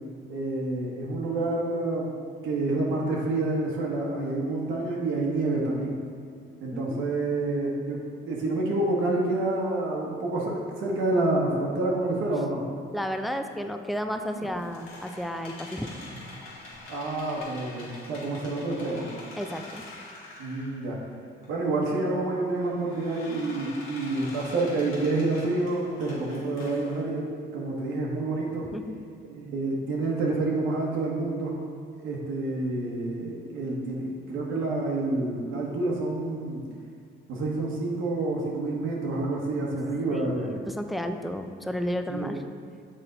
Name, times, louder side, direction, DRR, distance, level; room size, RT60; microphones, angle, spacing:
voice 1, 0.3-2.1 2.4-5.9 6.6-12.7 14.4-14.5 16.9-19.1 20.4-21.0 21.5-28.7 29.3-31.6 32.0-36.6 37.3-40.5 42.1-42.3, right 2 dB, 90° right, -3 dB, 1.1 m, -28 dB
voice 2, 6.7-7.0 12.9-16.0 19.4-19.8 28.6-29.0 40.1-42.4, equal, ahead, 6 dB, 0.3 m, -32 dB
sound 1, 14.3-21.0 21.4-21.5 22.3-27.0, left 2 dB, 90° left, 1.3 m, -45 dB
6.5 x 4.3 x 3.9 m, 2.3 s
cardioid pair, 90°, 20 cm